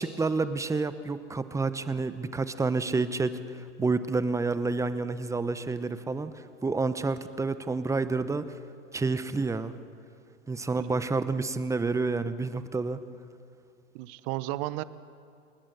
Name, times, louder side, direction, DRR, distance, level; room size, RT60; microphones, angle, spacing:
voice 1, 0.0-8.4 8.9-9.7 10.5-13.0, right 3 dB, 5° right, 13 dB, 0.8 m, -29 dB
voice 2, 13.9-14.8, right 17 dB, 45° right, 17 dB, 0.9 m, -34 dB
29.5 x 19.0 x 6.8 m, 2.4 s
hypercardioid pair, 105°, 41 cm